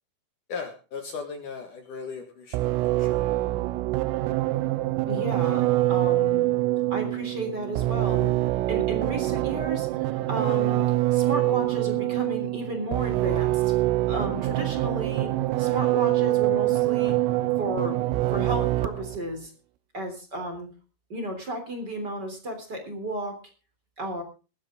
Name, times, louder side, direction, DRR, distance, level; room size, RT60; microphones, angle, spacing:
voice 1, 0.5-2.7 3.0-3.3, left 5 dB, 60° left, 4 dB, 2.4 m, -37 dB
sound 1, 2.5-19.2, right 16 dB, 85° right, 3.4 m, -25 dB
voice 2, 5.1-6.5 6.9-8.3 8.7-10.8 11.1-13.7 14.1-15.3 15.6-17.1 17.6-18.0 18.3-19.5 19.9-20.7 21.1-23.4 24.0-24.2, right 1 dB, 25° right, 5 dB, 3.2 m, -33 dB
18.5 x 12.5 x 3.7 m, 0.34 s
omnidirectional pair, 5.7 m